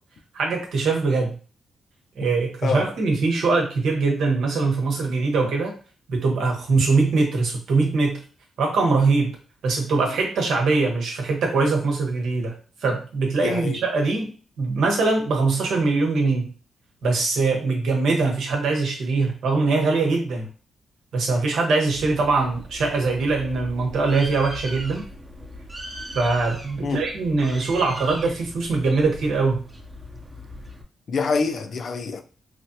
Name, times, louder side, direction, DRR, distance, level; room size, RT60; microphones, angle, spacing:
voice 1, 0.3-1.3 2.2-5.7 6.1-8.2 8.6-9.4 9.6-12.5 12.8-14.3 14.6-16.5 17.0-20.5 21.1-25.0 26.1-29.6, right 3 dB, 85° right, 1.0 m, -22 dB
voice 2, 13.4-13.8 26.8-27.0 31.1-32.2, left 4 dB, 55° left, 0.4 m, -25 dB
Bird, 21.9-30.8, equal, 20° right, 0.6 m, -39 dB
3.3 x 2.3 x 2.7 m
cardioid pair, 115°, 0 cm